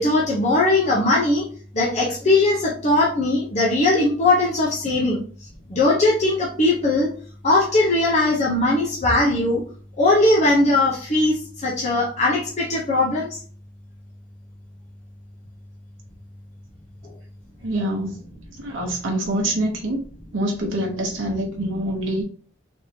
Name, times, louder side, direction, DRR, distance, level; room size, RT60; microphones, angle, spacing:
voice 1, 0.0-1.4 1.7-5.2 5.7-7.1 7.4-9.6 10.0-13.4, left 2 dB, 35° left, -4 dB, 0.8 m, -19 dB
voice 2, 17.6-18.2 18.6-20.0 20.3-22.2, right 1 dB, 90° right, 0 dB, 0.8 m, -25 dB
3.5 x 3.2 x 2.8 m, 0.42 s
head